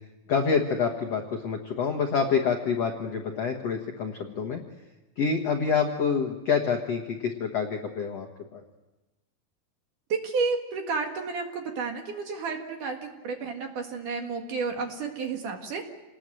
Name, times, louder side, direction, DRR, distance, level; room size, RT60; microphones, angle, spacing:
voice 1, 0.3-4.6 5.2-8.3 8.5-8.6, left 5 dB, 70° left, 3 dB, 1.5 m, -27 dB
voice 2, 10.1-15.8, right 4 dB, 55° right, 3 dB, 2.7 m, -31 dB
28.5 x 20.0 x 7.8 m, 1.1 s
omnidirectional pair, 5.2 m